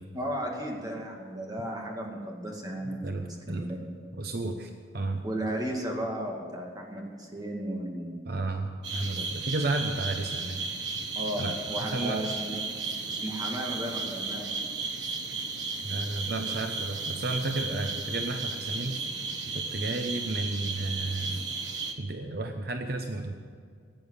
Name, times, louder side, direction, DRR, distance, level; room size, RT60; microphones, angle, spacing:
voice 1, 0.1-3.9 5.2-8.2 11.2-12.6 13.1-14.6, right 1 dB, 20° right, 0 dB, 2.3 m, -34 dB
voice 2, 3.0-3.7 4.2-5.2 8.3-10.6 11.4-12.2 15.8-19.0 19.5-21.5 22.0-23.3, right 2 dB, 55° right, 5 dB, 0.8 m, -32 dB
sound 1, 8.8-21.9, right 4 dB, 90° right, 1.4 m, -34 dB
16.5 x 9.2 x 8.3 m, 2.1 s
head